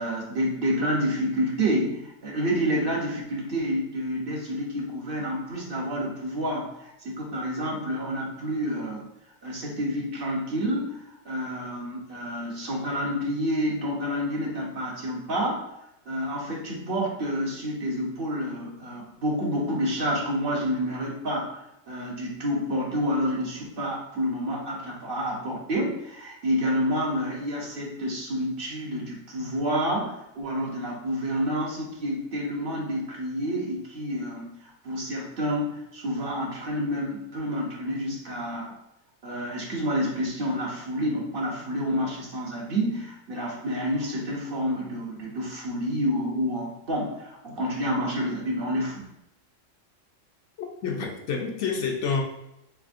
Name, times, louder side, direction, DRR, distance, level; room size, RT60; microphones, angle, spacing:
voice 1, 0.0-9.0 9.4-15.6 16.1-38.7 39.2-49.1, equal, 50° right, -2 dB, 0.9 m, -29 dB
voice 2, 50.6-52.2, left 5 dB, 70° left, 1 dB, 0.9 m, -28 dB
3.4 x 3.4 x 2.4 m, 0.83 s
omnidirectional pair, 1.3 m